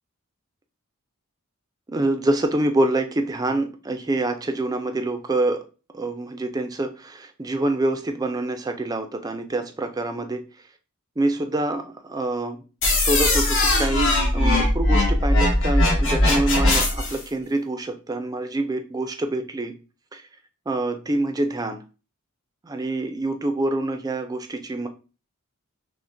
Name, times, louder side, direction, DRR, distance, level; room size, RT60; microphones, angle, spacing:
voice 1, 1.9-5.6 5.9-10.5 11.2-12.6 12.9-19.8 20.1-20.2 20.7-21.8 22.6-24.9, right 2 dB, 15° right, 7 dB, 0.4 m, -26 dB
sound 1, 12.8-17.2, left 1 dB, 60° left, 1.2 m, -20 dB
6.0 x 2.1 x 2.6 m, 0.33 s
head